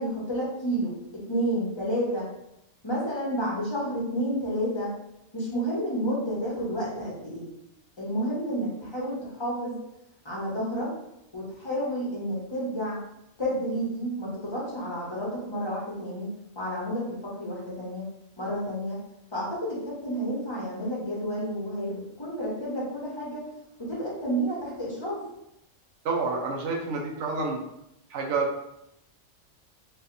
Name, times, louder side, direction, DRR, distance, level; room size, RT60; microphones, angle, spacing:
voice 1, 0.0-2.3 2.8-4.9 5.3-7.5 8.0-9.8 10.2-10.9 11.3-13.0 13.4-18.0 18.4-19.0 19.3-23.5 23.8-25.3, equal, 25° left, -5 dB, 1.0 m, -30 dB
voice 2, 26.0-27.6 28.1-28.5, right 3 dB, 70° right, -1 dB, 1.0 m, -28 dB
4.2 x 2.6 x 2.6 m, 0.83 s
omnidirectional pair, 1.3 m